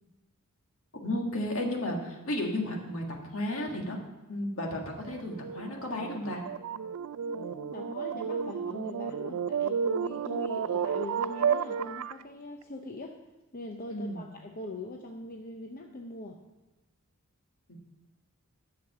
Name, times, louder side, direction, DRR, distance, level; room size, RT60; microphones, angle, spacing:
voice 1, 1.0-4.0 4.3-6.4 13.9-14.2 17.7-17.8, left 1 dB, 65° left, 1 dB, 1.8 m, -33 dB
sound 1, 4.9-12.2, right 7 dB, 70° right, 0.3 m, -32 dB
voice 2, 7.2-13.2 13.5-16.4, left 2 dB, 40° left, 2 dB, 0.7 m, -42 dB
10.5 x 7.0 x 5.7 m, 1.1 s
head